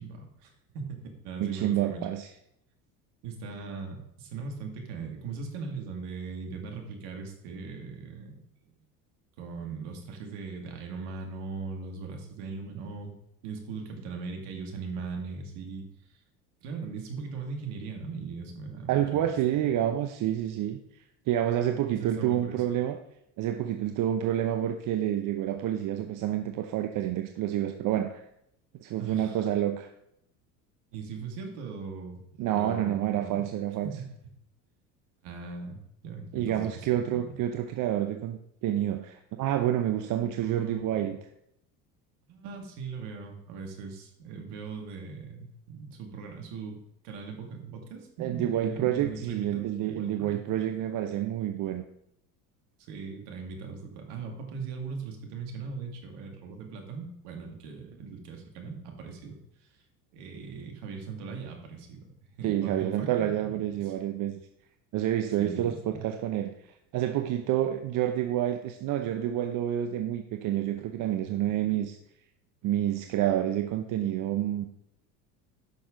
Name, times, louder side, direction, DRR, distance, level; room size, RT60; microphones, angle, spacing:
voice 1, 0.0-2.0 3.2-8.4 8.6-8.7 9.4-13.1 13.4-15.9 16.6-19.8 21.9-22.6 29.0-29.4 30.9-32.2 32.5-33.5 33.8-34.2 35.2-37.4 40.4-41.1 42.3-46.8 47.0-50.4 52.9-59.4 60.1-62.0 62.4-63.9 65.4-66.0, right 4 dB, 65° right, 3 dB, 2.2 m, -39 dB
voice 2, 1.4-2.3 18.9-20.8 21.3-23.0 23.4-28.2 28.8-29.9 32.4-33.9 36.3-41.2 48.2-51.8 62.4-64.3 64.9-72.0 72.6-74.7, right 11 dB, 45° right, 7 dB, 0.7 m, -28 dB
10.5 x 6.3 x 3.8 m, 0.75 s
hypercardioid pair, 75°, 44 cm